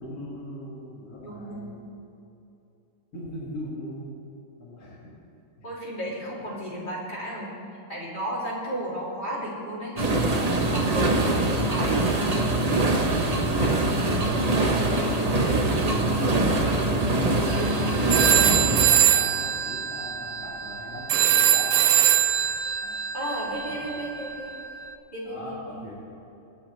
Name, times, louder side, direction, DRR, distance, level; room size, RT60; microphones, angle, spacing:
voice 1, 0.0-1.8 3.1-4.1 4.6-5.1 17.0-21.9 22.8-23.0 23.4-23.6 23.9-24.0 25.3-26.0, left 1 dB, 60° left, -7 dB, 2.5 m, -39 dB
voice 2, 1.2-1.8 5.6-7.5 7.9-10.0 10.7-12.5 13.6-15.6 23.1-24.5 25.1-25.8, right 1 dB, 25° left, -7 dB, 3.0 m, -34 dB
sound 1, 10.0-18.8, right 2 dB, 30° right, 0.8 m, -23 dB
sound 2, 17.5-17.7 18.1-24.8, right 9 dB, 75° right, 1.3 m, -23 dB
23.5 x 8.7 x 3.2 m, 2.8 s
omnidirectional pair, 1.9 m